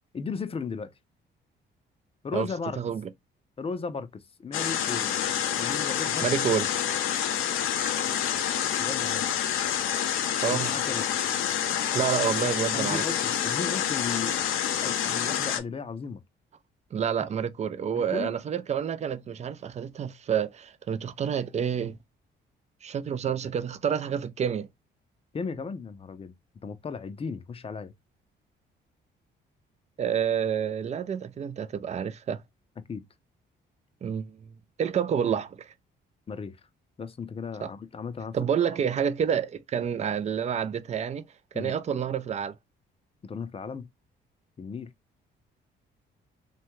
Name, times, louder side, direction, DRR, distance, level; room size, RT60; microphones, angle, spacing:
voice 1, 0.1-0.9 2.2-2.8 3.6-5.2 5.6-6.3 8.8-9.2 10.5-11.0 12.7-14.4 14.8-16.2 17.2-17.3 17.9-18.3 25.3-26.3 26.6-27.9 32.9-33.0 36.3-36.6 37.0-38.4 41.5-41.7 43.2-43.9 44.6-44.9, left 5 dB, 30° left, 0.5 m, -35 dB
voice 2, 2.8-3.1 6.2-6.7 10.4-10.7 11.9-13.0 16.9-22.0 22.8-24.7 30.0-32.4 34.0-34.4 34.8-35.7 37.6-37.7 38.3-41.3 41.5-42.6, right 8 dB, 35° right, 0.3 m, -28 dB
sound 1, 4.5-15.6, left 9 dB, 85° left, 0.6 m, -28 dB
2.7 x 2.2 x 3.0 m
cardioid pair, 90°, 20 cm